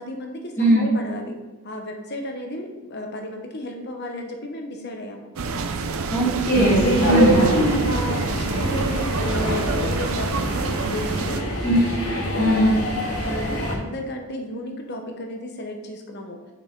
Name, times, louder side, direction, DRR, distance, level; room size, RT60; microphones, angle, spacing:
voice 1, 0.0-1.4 1.6-5.3 7.1-11.4 12.2-16.4, left 1 dB, 50° left, 3 dB, 1.0 m, -33 dB
voice 2, 0.6-0.9 6.1-7.5 11.6-11.8 12.4-12.7, right 1 dB, 10° left, -6 dB, 1.4 m, -19 dB
sound 1, 5.4-11.4, right 4 dB, 70° right, 0.6 m, -27 dB
sound 2, 6.5-13.7, equal, 90° left, 1.8 m, -24 dB
6.8 x 5.4 x 3.8 m, 1.2 s
head